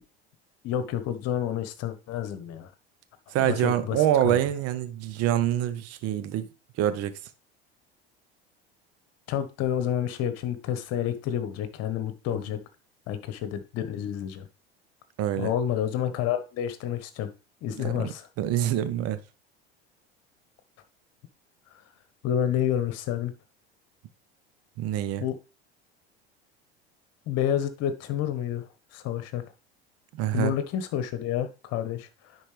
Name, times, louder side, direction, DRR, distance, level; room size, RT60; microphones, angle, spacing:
voice 1, 0.6-2.7 3.4-4.4 9.3-12.6 13.1-14.5 15.4-17.3 17.6-18.3 22.2-23.3 25.2-25.4 27.3-28.7 28.9-29.4 30.3-32.4, left 10 dB, 55° left, 1.2 m, -29 dB
voice 2, 3.3-6.5 6.8-7.2 15.2-15.5 17.8-19.2 24.8-25.2 30.1-30.5, right 12 dB, 50° right, 1.0 m, -26 dB
10.0 x 4.4 x 3.3 m
hypercardioid pair, 75°, 31 cm